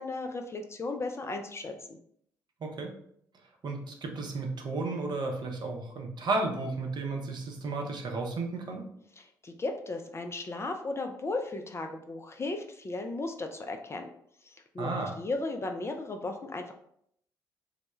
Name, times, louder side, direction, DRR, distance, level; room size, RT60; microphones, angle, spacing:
voice 1, 0.0-2.0 9.2-14.1 14.4-14.9 15.2-16.7, left 2 dB, 25° left, 4 dB, 0.3 m, -35 dB
voice 2, 2.6-2.9 3.6-8.9 14.8-15.1, right 3 dB, 45° right, 2 dB, 0.6 m, -33 dB
2.1 x 2.1 x 3.0 m, 0.69 s
hypercardioid pair, 45°, 10 cm